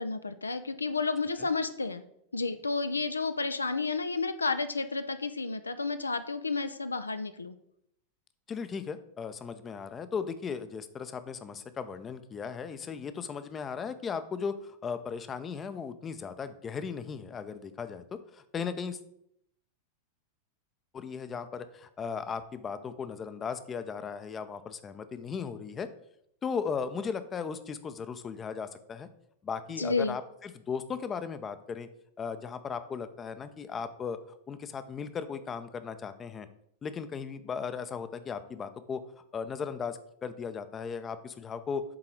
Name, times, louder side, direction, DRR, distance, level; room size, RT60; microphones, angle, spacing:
voice 1, 0.0-2.0 2.3-7.6 29.8-30.2, left 4 dB, 80° left, 11 dB, 0.3 m, -31 dB
voice 2, 8.5-19.0 20.9-25.9 26.4-29.1 29.4-31.9 32.2-34.2 34.5-36.5 36.8-39.0 39.3-41.8, left 6 dB, 20° left, 11 dB, 0.5 m, -37 dB
7.6 x 3.8 x 4.5 m, 0.75 s
figure-of-eight pair, 90°, 0 cm